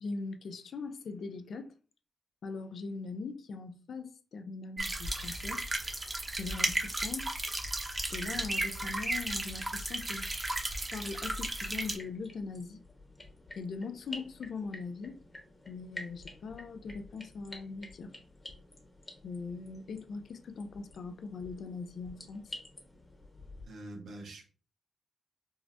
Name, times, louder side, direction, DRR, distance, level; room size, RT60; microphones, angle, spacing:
voice 1, 0.0-1.7 2.4-5.6 6.4-7.3 8.1-10.3 10.9-12.8 13.5-15.2 15.7-18.2 19.2-22.5, left 4 dB, 70° left, 0.4 m, -41 dB
sound 1, 4.8-12.0, right 1 dB, 25° right, 0.7 m, -34 dB
sound 2, 11.9-23.6, left 2 dB, 25° left, 1.1 m, -50 dB
voice 2, 23.7-24.5, right 1 dB, 90° right, 0.9 m, -45 dB
4.6 x 2.1 x 2.6 m
cardioid pair, 105°, 0 cm